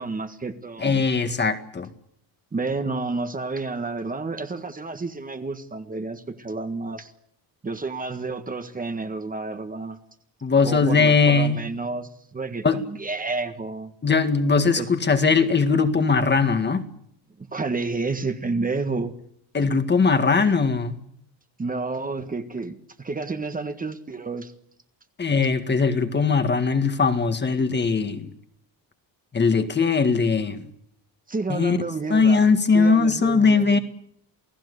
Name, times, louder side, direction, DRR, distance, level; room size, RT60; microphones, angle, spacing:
voice 1, 0.0-1.0 2.5-7.1 7.6-10.0 10.6-13.9 14.7-14.9 17.4-19.2 21.6-24.5 31.3-32.5 32.7-33.8, right 3 dB, 20° right, 1.7 m, -30 dB
voice 2, 0.8-1.9 10.4-11.6 12.6-12.8 14.0-16.9 19.5-21.0 25.2-28.3 29.3-30.7 31.5-31.8 32.1-33.8, left 4 dB, 25° left, 2.0 m, -20 dB
29.0 x 18.0 x 8.3 m
cardioid pair, 145°, 45 cm